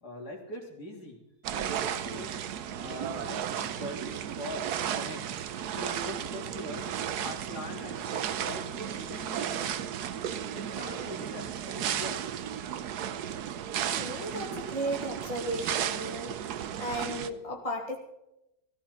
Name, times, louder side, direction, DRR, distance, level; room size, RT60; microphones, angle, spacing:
voice 1, 0.0-1.2 1.5-5.2 5.7-6.9 7.2-9.7 10.5-12.2, equal, 60° left, 0 dB, 3.5 m, -42 dB
sound 1, 1.4-17.3, right 9 dB, 70° right, 1.3 m, -34 dB
voice 2, 13.8-16.3 16.8-18.0, right 1 dB, 20° left, 1 dB, 2.2 m, -35 dB
16.5 x 15.0 x 4.4 m, 0.88 s
omnidirectional pair, 1.9 m